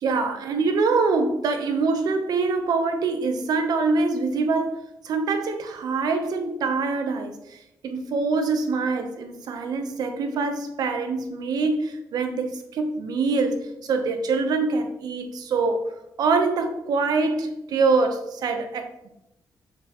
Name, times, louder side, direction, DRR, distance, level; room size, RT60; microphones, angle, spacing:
voice 1, 0.0-7.6 7.8-15.9 16.2-19.1, right 4 dB, 80° right, 7 dB, 0.9 m, -24 dB
6.9 x 5.6 x 3.0 m, 0.85 s
cardioid pair, 65°, 7 cm